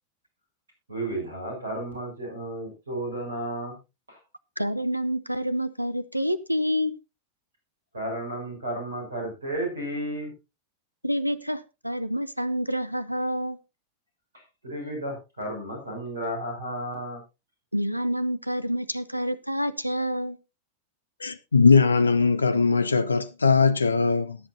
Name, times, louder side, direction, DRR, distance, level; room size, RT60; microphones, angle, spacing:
voice 1, 0.9-3.8 4.1-4.2 7.9-10.3 14.6-17.2, right 1 dB, 75° right, 6.4 m, -33 dB
voice 2, 4.6-7.0 11.0-13.6 17.7-20.4, equal, 90° right, 0.7 m, -28 dB
voice 3, 21.2-24.4, left 4 dB, 75° left, 0.5 m, -20 dB
21.0 x 7.7 x 2.7 m
figure-of-eight pair, 90°, 0 cm